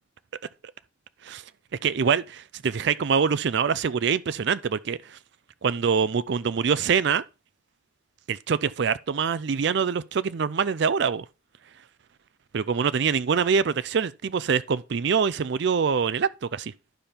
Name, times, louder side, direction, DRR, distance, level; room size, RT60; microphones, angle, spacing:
voice 1, 1.8-5.0 5.6-7.2 8.3-11.2 12.5-16.7, right 6 dB, 55° right, 0.4 m, -24 dB
11.5 x 5.2 x 4.3 m
head